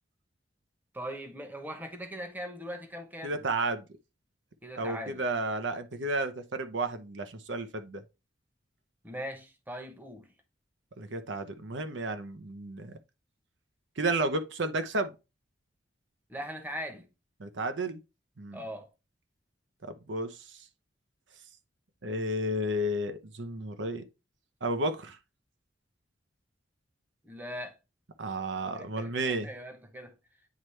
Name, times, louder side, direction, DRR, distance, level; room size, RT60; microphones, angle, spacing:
voice 1, 0.9-3.4 4.6-5.2 9.0-10.3 16.3-17.1 18.5-18.9 27.2-27.8 28.7-30.2, equal, 10° right, 1.0 m, -40 dB
voice 2, 3.2-3.8 4.8-8.0 11.0-13.0 14.0-15.1 17.4-18.0 18.4-18.6 20.1-20.4 22.0-24.0 24.6-25.2 28.2-29.5, right 2 dB, 75° right, 0.8 m, -32 dB
9.4 x 3.1 x 3.3 m
head